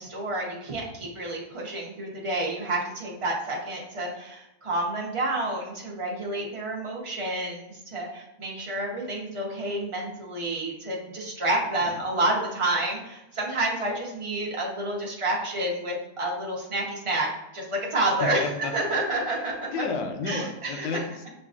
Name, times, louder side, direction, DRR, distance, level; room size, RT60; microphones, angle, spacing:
voice 1, 0.0-17.3 17.5-19.7 20.3-21.0, right 1 dB, 40° right, -3 dB, 0.4 m, -29 dB
voice 2, 18.2-18.9 19.5-21.3, left 4 dB, 90° left, 4 dB, 1.4 m, -32 dB
7.1 x 2.5 x 2.4 m, 0.90 s
omnidirectional pair, 1.9 m